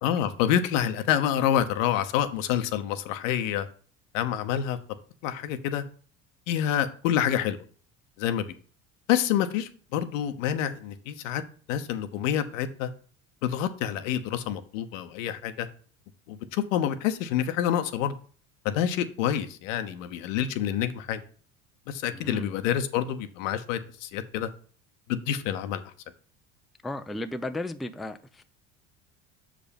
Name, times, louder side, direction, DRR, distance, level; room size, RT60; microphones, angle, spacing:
voice 1, 0.0-3.7 4.1-4.8 5.2-5.8 6.5-7.6 8.2-8.5 9.1-11.4 11.7-12.9 13.4-15.7 16.3-18.2 18.6-21.2 21.9-24.5 25.1-25.8, left 10 dB, 85° left, 0.9 m, -27 dB
voice 2, 22.1-22.5 26.8-28.4, left 1 dB, ahead, 0.4 m, -35 dB
6.4 x 5.0 x 5.2 m
supercardioid pair, 85°, 38 cm